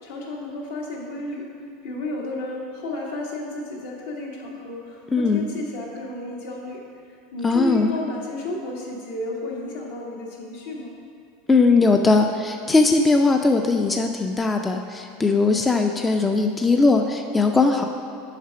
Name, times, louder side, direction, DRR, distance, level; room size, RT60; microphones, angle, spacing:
voice 1, 0.0-1.4 1.8-6.8 7.3-10.9, left 2 dB, 80° left, -3 dB, 1.6 m, -32 dB
voice 2, 5.1-5.5 7.4-7.9 11.5-17.9, left 3 dB, 15° left, 4 dB, 0.4 m, -19 dB
6.6 x 4.8 x 5.7 m, 2.4 s
supercardioid pair, 110°, 0 cm